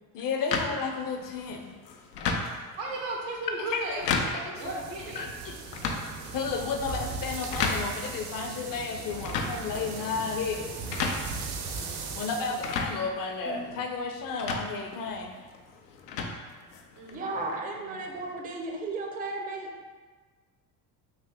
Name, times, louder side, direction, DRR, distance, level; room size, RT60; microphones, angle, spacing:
voice 1, 0.1-1.8 3.7-4.7 5.2-5.6 6.3-10.6 12.2-15.4, left 4 dB, 45° left, 3 dB, 0.7 m, -32 dB
sound 1, 0.5-17.1, left 4 dB, 85° left, 0.6 m, -35 dB
voice 2, 2.7-5.2 17.0-18.0, right 2 dB, 80° right, -1 dB, 1.0 m, -36 dB
sound 2, 4.5-12.9, right 4 dB, 55° right, 0.7 m, -38 dB
voice 3, 17.1-19.7, right 2 dB, 20° right, 2 dB, 0.5 m, -34 dB
3.4 x 2.7 x 3.6 m, 1.4 s
hypercardioid pair, 60°, 48 cm